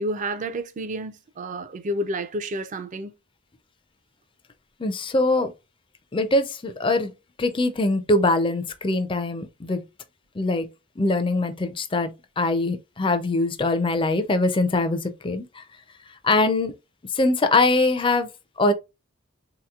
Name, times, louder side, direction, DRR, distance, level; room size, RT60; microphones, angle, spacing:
voice 1, 0.0-3.1, right 1 dB, 35° right, 0.4 m, -30 dB
voice 2, 4.8-5.5 6.1-7.1 7.4-9.8 10.4-10.7 11.0-15.6 16.2-16.8 17.1-18.3 18.6-18.7, left 2 dB, 25° left, 0.4 m, -22 dB
3.8 x 2.9 x 2.3 m
head